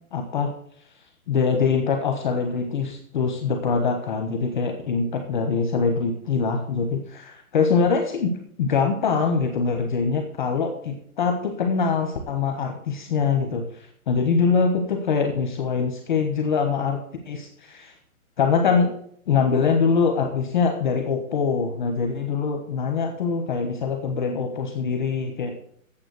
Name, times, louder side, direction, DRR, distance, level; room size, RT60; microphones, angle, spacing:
voice 1, 0.1-0.5 1.3-8.3 8.6-17.0 17.3-17.9 18.4-18.9 19.3-25.5, left 5 dB, 5° left, 3 dB, 0.6 m, -23 dB
9.3 x 7.2 x 8.1 m, 0.65 s
hypercardioid pair, 170°, 42 cm